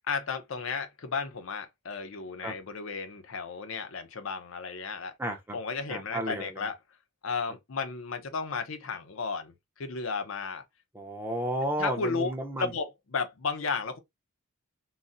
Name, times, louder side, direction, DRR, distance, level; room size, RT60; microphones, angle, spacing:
voice 1, 0.1-5.1 5.5-6.8 7.2-10.6 11.8-12.3 12.6-14.0, left 5 dB, 75° left, 0.6 m, -33 dB
voice 2, 5.2-5.6 5.9-6.5 10.9-12.7, right 1 dB, 10° right, 0.5 m, -32 dB
3.9 x 2.0 x 2.5 m
head